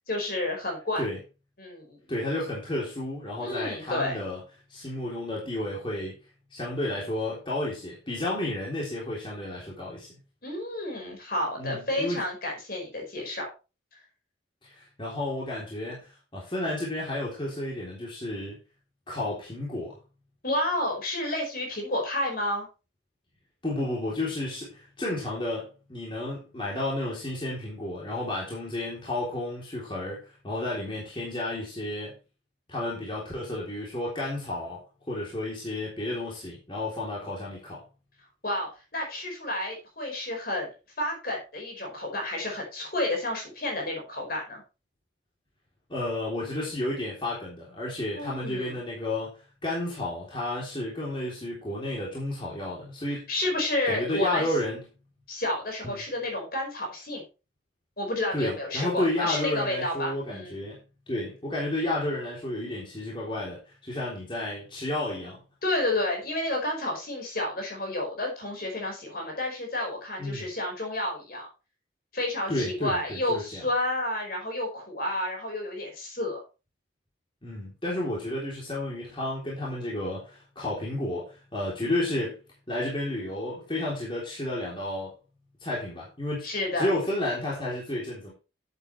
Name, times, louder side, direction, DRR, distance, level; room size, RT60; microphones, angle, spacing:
voice 1, 0.1-1.0 1.6-2.0 3.4-4.2 10.4-13.5 20.4-22.7 38.4-40.7 41.0-44.6 48.1-48.8 53.3-54.5 55.3-57.2 58.0-60.6 65.6-71.5 72.1-76.4 86.4-86.9, left 1 dB, 50° left, 1 dB, 5.0 m, -30 dB
voice 2, 2.1-4.4 4.7-6.1 6.5-10.1 11.6-12.2 14.6-18.6 19.1-20.0 23.6-32.2 32.7-34.8 35.1-37.8 45.9-53.3 53.9-54.8 55.8-56.0 58.3-65.4 70.2-70.5 72.5-73.6 77.4-82.4 82.7-85.1 85.6-86.5 86.8-88.3, left 1 dB, 25° left, -5 dB, 3.5 m, -32 dB
11.0 x 8.3 x 3.3 m, 0.31 s
head